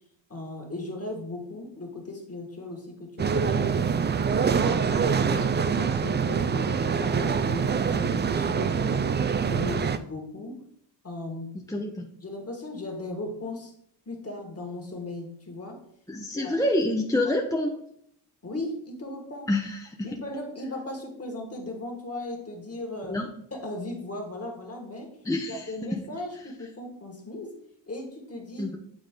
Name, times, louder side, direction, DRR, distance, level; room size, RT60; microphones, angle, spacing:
voice 1, 0.3-3.8 4.4-9.1 9.4-10.6 11.0-11.9 12.2-13.7 14.0-15.8 16.3-16.6 17.2-17.3 18.4-19.5 20.0-23.2 23.5-25.1 25.5-27.6 27.9-28.7, left 2 dB, 35° left, 2 dB, 1.8 m, -37 dB
sound 1, 3.2-10.0, right 6 dB, 25° right, 0.3 m, -25 dB
voice 2, 11.7-12.1 16.1-17.7 19.5-20.1 23.1-23.3 25.2-26.0 28.6-28.8, left 1 dB, 10° left, 1 dB, 0.7 m, -27 dB
9.0 x 3.8 x 3.7 m, 0.69 s
cardioid pair, 85°, 43 cm